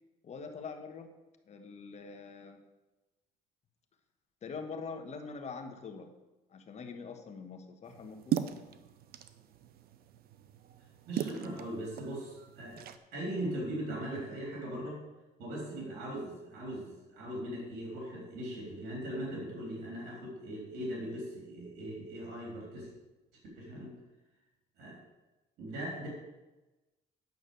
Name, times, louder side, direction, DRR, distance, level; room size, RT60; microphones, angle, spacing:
voice 1, 0.2-1.1 1.5-2.6 4.4-6.2 6.5-8.4, left 5 dB, 40° left, 5 dB, 1.4 m, -44 dB
sound 1, 7.8-13.0, right 10 dB, 65° right, 0.7 m, -39 dB
voice 2, 11.1-15.0 15.4-22.9 23.6-23.9 24.8-25.0 25.6-26.1, right 1 dB, 85° right, -2 dB, 3.6 m, -39 dB
9.6 x 6.1 x 6.9 m, 1.1 s
cardioid pair, 110°, 17 cm